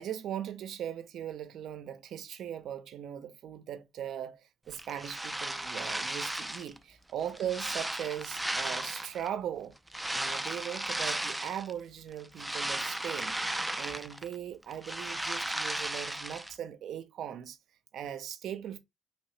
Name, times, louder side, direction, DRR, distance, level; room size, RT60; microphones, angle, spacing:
voice 1, 0.0-9.7 10.1-13.4 13.8-17.6 17.9-18.8, right 10 dB, 75° right, 0.6 m, -39 dB
sound 1, 4.7-6.8 7.2-9.3 9.9-11.7 12.1-14.3 14.6-16.5, right 1 dB, 10° right, 0.4 m, -35 dB
3.1 x 2.8 x 3.2 m
cardioid pair, 90°, 0 cm